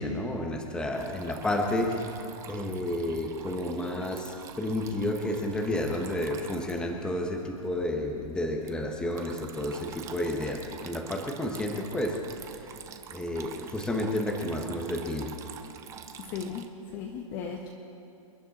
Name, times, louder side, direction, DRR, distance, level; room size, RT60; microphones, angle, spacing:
voice 1, 0.0-12.7 13.1-15.4, left 1 dB, 5° left, 1 dB, 1.2 m, -31 dB
Water tap faucet / Trickle dribble, 0.9-16.6, right 8 dB, 15° right, 0.7 m, -47 dB
voice 2, 16.2-17.7, left 6 dB, 30° left, 1 dB, 1.3 m, -37 dB
28.0 x 10.5 x 4.3 m, 2.7 s
hypercardioid pair, 150°, 18 cm